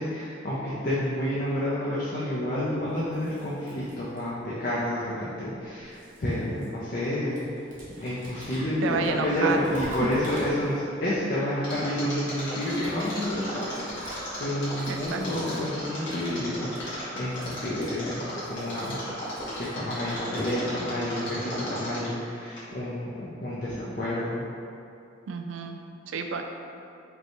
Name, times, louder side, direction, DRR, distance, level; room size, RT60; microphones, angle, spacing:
voice 1, 0.0-7.4 8.0-19.1 19.6-24.4, left 1 dB, 45° left, -8 dB, 0.5 m, -29 dB
sound 1, 3.0-4.5 5.5-7.1 7.3-11.0 12.4-15.7 16.0-16.3 16.6-16.9 17.2-20.6, equal, 45° right, 0.9 m, -44 dB
voice 2, 8.8-9.6 14.9-15.2 25.3-25.8 26.1-26.4, right 5 dB, 75° right, 4 dB, 0.3 m, -30 dB
Mechanisms, 11.6-22.2 22.6-22.7, left 1 dB, 65° left, 1.4 m, -36 dB
5.1 x 2.2 x 3.0 m, 2.6 s
head